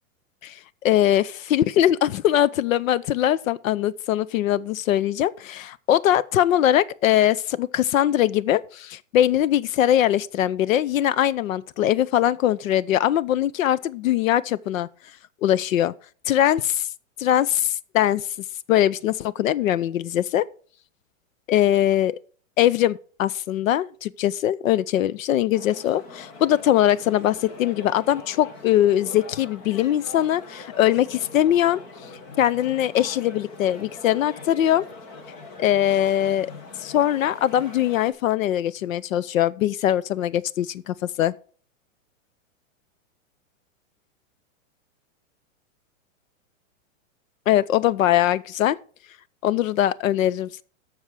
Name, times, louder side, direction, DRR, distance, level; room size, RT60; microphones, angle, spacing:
voice 1, 0.4-14.9 15.4-15.9 16.3-16.9 17.2-18.3 18.7-20.5 21.5-22.2 22.6-31.8 32.4-34.8 35.6-36.5 36.8-41.3 47.5-48.8 49.4-50.6, left 12 dB, 85° left, 0.7 m, -21 dB
sound 1, 25.5-38.1, left 3 dB, 30° left, 1.3 m, -42 dB
13.0 x 6.4 x 4.8 m
supercardioid pair, 170°, 39 cm